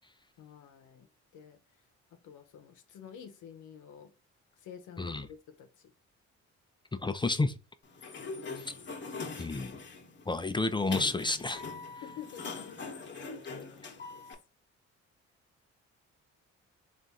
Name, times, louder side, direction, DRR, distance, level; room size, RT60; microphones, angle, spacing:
voice 1, 0.4-1.1 1.3-1.6 2.1-4.1 4.6-5.9 8.5-8.7 12.0-13.3 13.6-14.3, left 8 dB, 80° left, 0.7 m, -50 dB
voice 2, 7.0-7.5 9.4-9.8 10.3-11.6, left 3 dB, 15° left, 0.4 m, -30 dB
Sliding door, 7.8-14.3, left 4 dB, 40° left, 1.0 m, -42 dB
3.5 x 2.5 x 4.0 m
cardioid pair, 90°, 30 cm